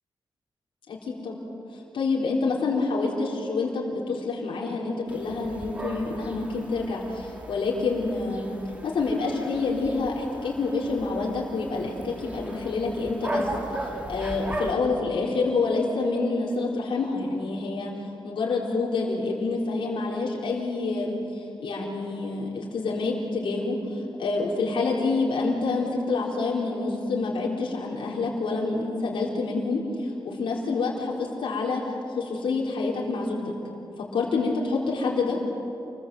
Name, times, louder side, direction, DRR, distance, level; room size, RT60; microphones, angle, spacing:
voice 1, 0.9-1.4 1.7-8.5 8.8-17.9 18.2-31.8 32.2-33.4 34.0-35.4, left 3 dB, 80° left, -3 dB, 4.2 m, -27 dB
sound 1, 5.1-14.7, right 1 dB, 15° right, 2.4 m, -37 dB
28.5 x 21.5 x 8.0 m, 2.8 s
wide cardioid pair, 160°, 9 cm